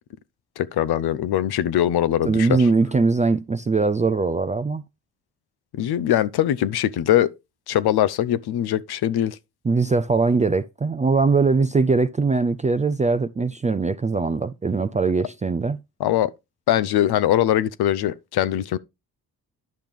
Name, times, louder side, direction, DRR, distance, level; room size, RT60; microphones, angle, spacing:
voice 1, 0.6-2.7 5.7-7.3 7.7-9.4 16.0-16.3 16.7-18.8, left 12 dB, 75° left, 0.7 m, -21 dB
voice 2, 2.2-4.8 9.6-15.8, right 4 dB, 20° right, 0.4 m, -21 dB
10.5 x 5.8 x 3.5 m
cardioid pair, 70°, 39 cm